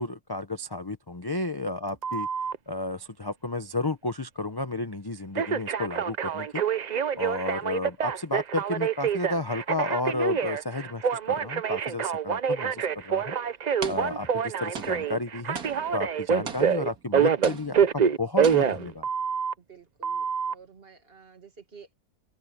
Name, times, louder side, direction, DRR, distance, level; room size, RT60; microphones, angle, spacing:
voice 1, 0.0-2.3 2.7-6.6 7.1-13.3 13.9-15.6 15.9-19.1, left 2 dB, 20° left, 0.6 m, -32 dB
Telephone, 2.0-2.6 5.3-19.5 20.0-20.5, right 7 dB, 55° right, 0.4 m, -26 dB
sound 1, 12.8-12.9 13.8-14.5 14.7-17.1 17.4-18.1 18.4-19.0, right 6 dB, 75° right, 2.2 m, -40 dB
voice 2, 19.6-21.9, right 6 dB, 40° right, 2.1 m, -51 dB
open air
omnidirectional pair, 1.6 m